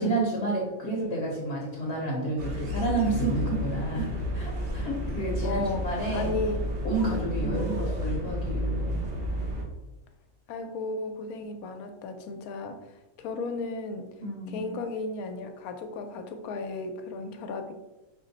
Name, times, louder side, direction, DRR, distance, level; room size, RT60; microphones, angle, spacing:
voice 1, 0.0-4.1 4.3-6.3 6.8-9.0 14.2-14.8, right 2 dB, 55° left, -2 dB, 0.9 m, -30 dB
sound 1, 2.4-9.6, left 1 dB, 50° right, 0.9 m, -31 dB
voice 2, 5.4-6.6 7.2-7.8 10.5-14.1 14.5-17.7, left 3 dB, 90° left, 6 dB, 1.1 m, -35 dB
5.0 x 2.1 x 3.9 m, 1.1 s
omnidirectional pair, 1.5 m